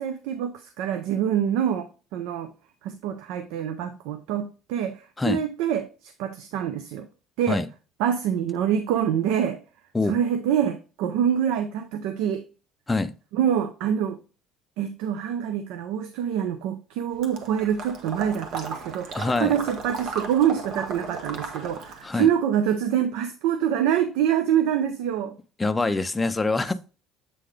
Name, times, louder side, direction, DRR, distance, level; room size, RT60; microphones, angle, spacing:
voice 1, 0.0-2.5 2.8-7.1 7.4-7.6 8.0-9.6 10.0-12.4 13.3-14.2 14.8-25.3, right 9 dB, 85° right, 0.5 m, -25 dB
Water / Liquid, 17.2-22.1, right 4 dB, 55° right, 1.2 m, -35 dB
voice 2, 19.1-19.5 22.0-22.3 25.6-26.7, left 3 dB, 15° left, 0.4 m, -24 dB
7.6 x 3.8 x 3.3 m
cardioid pair, 140°, 0 cm